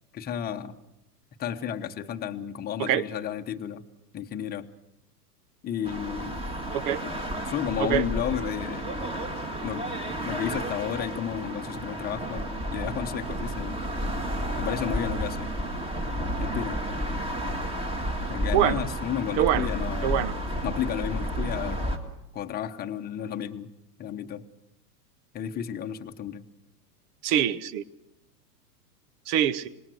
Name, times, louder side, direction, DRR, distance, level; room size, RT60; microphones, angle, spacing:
voice 1, 0.1-0.8 1.4-3.8 4.1-4.7 5.6-6.4 7.0-7.1 7.5-8.9 9.6-9.9 10.2-12.4 12.7-13.8 14.6-15.5 16.4-16.8 18.3-20.2 20.6-21.9 22.3-23.7 24.0-24.4 25.3-26.4, left 9 dB, 20° left, 5 dB, 1.1 m, -32 dB
sound 1, 5.8-22.0, equal, 10° right, 2.0 m, -31 dB
voice 2, 19.4-19.7 20.0-20.3 27.2-27.8 29.3-29.7, right 10 dB, 40° right, 18 dB, 1.0 m, -24 dB
26.0 x 20.0 x 6.3 m, 0.85 s
hypercardioid pair, 125°, 48 cm